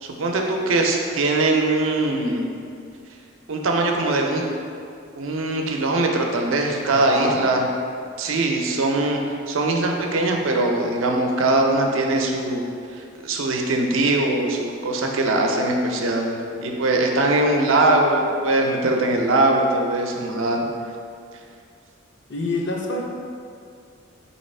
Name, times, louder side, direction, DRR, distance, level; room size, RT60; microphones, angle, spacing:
voice 1, 0.0-2.4 3.5-4.4 5.2-7.7 8.2-12.6 12.9-20.6, right 2 dB, 80° right, 1 dB, 0.5 m, -21 dB
voice 2, 6.9-7.5 22.3-23.0, left 2 dB, 60° left, -1 dB, 0.6 m, -26 dB
3.9 x 2.9 x 4.2 m, 2.3 s
head